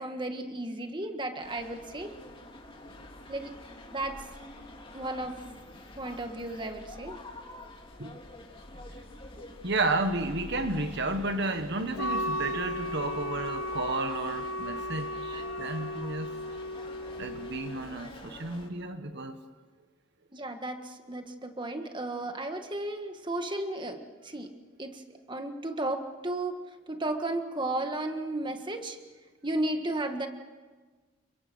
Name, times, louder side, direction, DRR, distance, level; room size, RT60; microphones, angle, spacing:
voice 1, 0.0-2.1 3.3-3.5 3.9-4.3 4.9-5.4 6.0-7.2 15.3-15.4 20.3-24.5 24.8-26.5 26.9-29.0 29.4-30.3, right 1 dB, 20° right, 5 dB, 1.7 m, -34 dB
sound 1, 1.4-18.7, left 1 dB, 25° left, 2.5 m, -47 dB
voice 2, 9.6-16.3 17.2-19.4, right 2 dB, 50° right, 7 dB, 1.4 m, -32 dB
Wind instrument woodwind instrument, 12.0-17.8, left 1 dB, 65° left, 1.2 m, -35 dB
29.0 x 22.5 x 6.3 m, 1.4 s
head